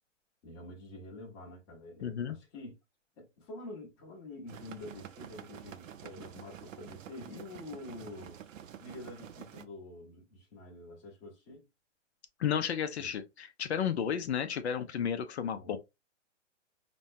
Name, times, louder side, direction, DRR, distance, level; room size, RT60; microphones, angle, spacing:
voice 1, 0.4-2.7 3.2-8.4 8.8-11.7 13.0-13.1 15.5-15.8, left 2 dB, 25° left, 1.1 m, -47 dB
voice 2, 2.0-2.4 12.4-15.8, left 8 dB, 55° left, 0.6 m, -32 dB
sound 1, 4.5-9.7, right 9 dB, 80° right, 0.6 m, -49 dB
5.1 x 2.2 x 2.6 m
hypercardioid pair, 155°, 38 cm